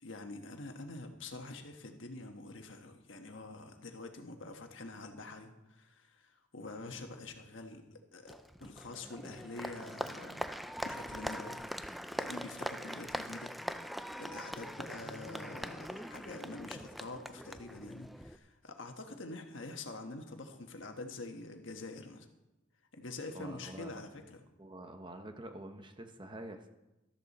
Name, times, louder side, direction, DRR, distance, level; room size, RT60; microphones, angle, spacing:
voice 1, 0.0-10.5 10.8-11.6 12.1-13.5 14.2-22.3 22.9-24.4, left 2 dB, 70° left, 5 dB, 1.4 m, -46 dB
Applause, 8.3-18.4, equal, ahead, 0.4 m, -42 dB
voice 2, 23.3-24.0 24.6-26.7, right 1 dB, 25° right, 6 dB, 0.9 m, -47 dB
14.0 x 13.0 x 4.2 m, 1.0 s
head